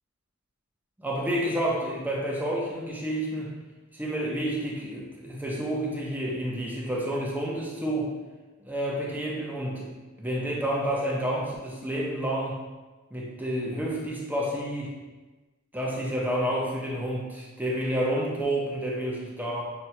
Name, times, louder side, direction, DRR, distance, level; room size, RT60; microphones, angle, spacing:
voice 1, 1.0-3.5 3.9-8.1 8.6-9.9 10.2-12.6 13.1-14.9 15.7-19.6, right 1 dB, 10° right, -4 dB, 0.5 m, -29 dB
5.8 x 2.2 x 2.7 m, 1.2 s
head